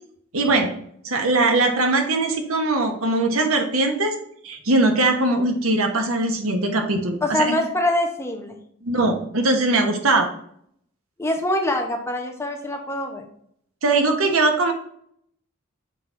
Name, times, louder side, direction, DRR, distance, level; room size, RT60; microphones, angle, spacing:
voice 1, 0.3-0.7 1.0-4.1 4.4-7.6 8.8-10.3 13.8-14.7, right 2 dB, 85° right, 4 dB, 1.2 m, -21 dB
voice 2, 7.2-8.5 11.2-13.3, left 1 dB, 10° left, 3 dB, 0.8 m, -24 dB
6.7 x 4.1 x 4.3 m, 0.67 s
head